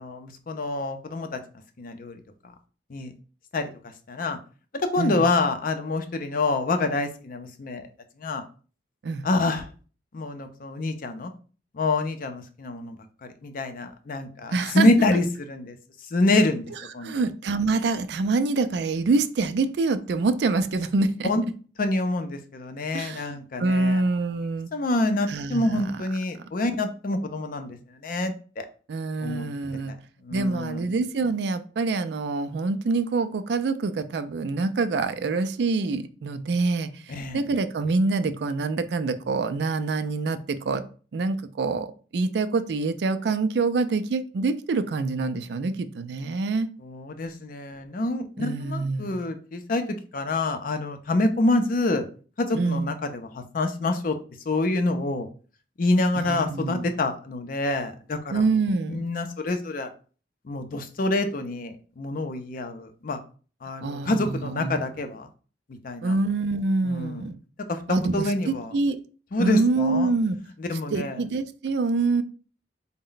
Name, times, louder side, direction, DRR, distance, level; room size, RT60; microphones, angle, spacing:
voice 1, 0.0-1.4 1.8-2.2 2.9-3.1 3.5-3.7 4.1-4.4 4.8-7.9 8.2-8.4 9.2-9.7 10.1-11.3 11.7-13.0 13.2-15.8 16.1-16.6 16.9-17.2 21.2-21.4 21.8-24.0 24.7-27.8 28.0-28.6 29.2-29.5 30.2-30.8 37.1-37.4 46.8-52.0 52.4-54.2 54.5-55.3 55.8-58.3 58.9-59.9 60.5-63.2 63.6-65.3 65.7-66.2 66.8-67.3 67.7-67.8 68.1-68.7 69.3-70.1 70.6-71.2, left 2 dB, 50° left, 8 dB, 0.5 m, -26 dB
voice 2, 14.5-14.9 17.0-21.3 22.9-24.7 25.3-26.0 28.9-29.9 30.3-40.8 41.1-46.7 48.4-49.2 52.5-52.9 56.2-56.9 58.3-59.1 63.8-64.8 66.0-67.4 67.9-69.0 69.4-70.4 70.9-72.2, right 3 dB, 65° right, 11 dB, 0.4 m, -26 dB
4.1 x 2.1 x 3.8 m, 0.38 s
head